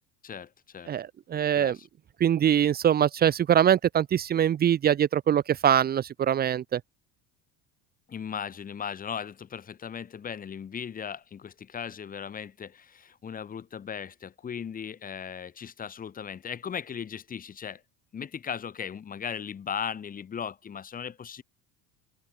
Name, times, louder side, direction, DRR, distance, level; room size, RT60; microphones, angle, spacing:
voice 1, 0.2-0.9 1.5-1.9 8.1-17.8 18.1-21.4, left 7 dB, 25° left, 6.5 m, -37 dB
voice 2, 0.9-1.8 2.2-6.8, right 9 dB, 30° right, 1.2 m, -23 dB
open air
cardioid pair, 145°, 31 cm